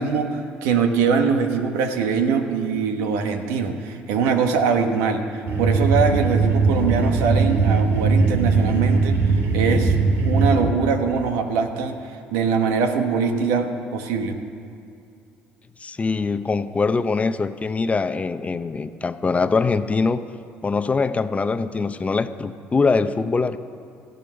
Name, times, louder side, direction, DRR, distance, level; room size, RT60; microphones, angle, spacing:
voice 1, 0.0-5.2 5.6-9.9 10.2-12.0 12.3-14.4, right 5 dB, 80° right, 6 dB, 1.2 m, -22 dB
sound 1, 5.5-10.6, right 3 dB, 60° right, 2.2 m, -19 dB
voice 2, 15.8-20.2 20.6-23.6, left 4 dB, 25° left, 12 dB, 0.6 m, -23 dB
14.0 x 10.5 x 5.8 m, 2.5 s
hypercardioid pair, 65°, 5 cm